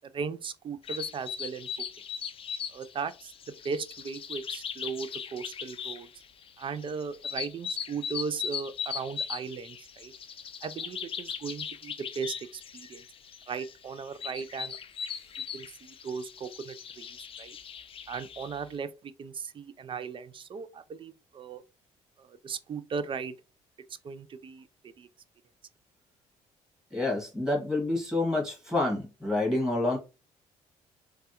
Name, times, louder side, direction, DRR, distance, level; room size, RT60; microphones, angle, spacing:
voice 1, 0.1-1.7 2.7-6.1 6.6-10.1 10.6-13.0 13.5-14.8 15.5-17.6 18.1-21.6 22.2-23.3 24.0-24.7 25.0-25.1, right 5 dB, 35° right, 0.4 m, -37 dB
sound 1, 0.8-18.6, left 7 dB, 40° left, 0.4 m, -39 dB
voice 2, 26.9-30.0, left 2 dB, 5° right, 1.7 m, -28 dB
3.3 x 2.3 x 2.8 m
cardioid pair, 85°, 14 cm